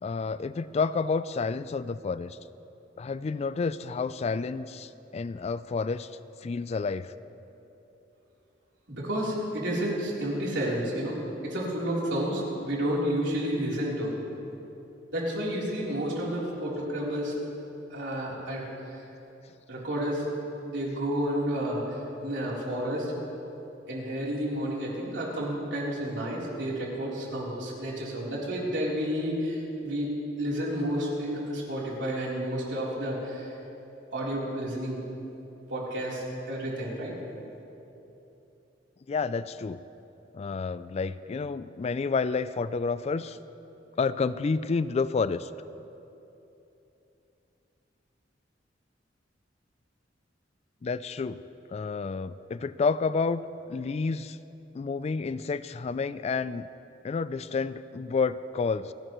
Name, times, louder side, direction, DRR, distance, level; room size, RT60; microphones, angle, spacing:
voice 1, 0.0-2.4 3.0-6.1 6.4-7.1 39.1-39.8 40.3-43.4 44.0-45.5 50.8-51.4 51.7-53.4 53.7-54.4 54.7-56.7 57.0-58.9, left 4 dB, 35° left, 15 dB, 0.3 m, -30 dB
voice 2, 8.9-11.2 11.4-14.2 15.1-17.4 17.9-18.6 18.9-19.0 19.7-20.3 20.6-23.1 23.9-33.5 34.1-35.0 35.7-37.1, equal, 90° right, -5 dB, 3.6 m, -31 dB
29.0 x 11.0 x 3.1 m, 3.0 s
head